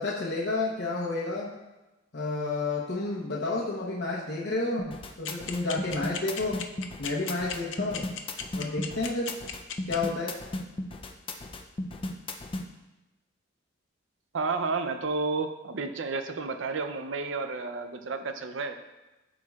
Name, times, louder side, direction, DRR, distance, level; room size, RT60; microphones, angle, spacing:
voice 1, 0.0-1.5 2.1-6.6 7.0-8.0 8.5-9.3 9.9-10.4, left 3 dB, 65° left, -4 dB, 1.0 m, -30 dB
sound 1, 4.8-12.6, left 2 dB, 30° left, 0.5 m, -35 dB
sound 2, 5.2-9.9, left 9 dB, 80° left, 0.5 m, -35 dB
voice 2, 14.3-18.7, right 4 dB, 80° right, 8 dB, 0.6 m, -31 dB
12.5 x 4.6 x 2.4 m, 1.0 s
head